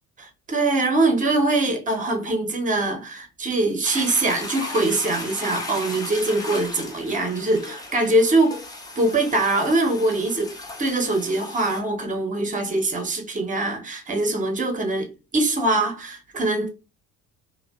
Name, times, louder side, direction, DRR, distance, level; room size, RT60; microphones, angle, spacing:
voice 1, 0.2-8.6 9.0-10.5 10.8-16.7, right 2 dB, 15° right, 0.7 m, -23 dB
Toilet flush, 3.8-11.8, left 2 dB, 10° left, 0.4 m, -36 dB
2.5 x 2.2 x 2.3 m
figure-of-eight pair, 60°, 45 cm